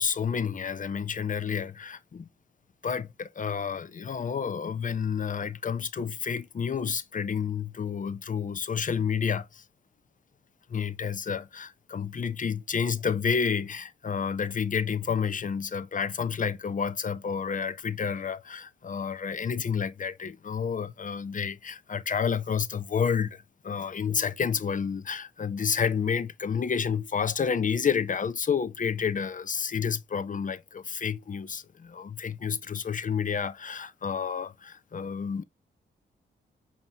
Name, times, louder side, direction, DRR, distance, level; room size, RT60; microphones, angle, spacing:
voice 1, 0.0-2.3 2.8-9.6 10.7-35.4, left 6 dB, 40° left, 0.6 m, -30 dB
5.2 x 2.8 x 2.7 m
supercardioid pair, 50°, 21 cm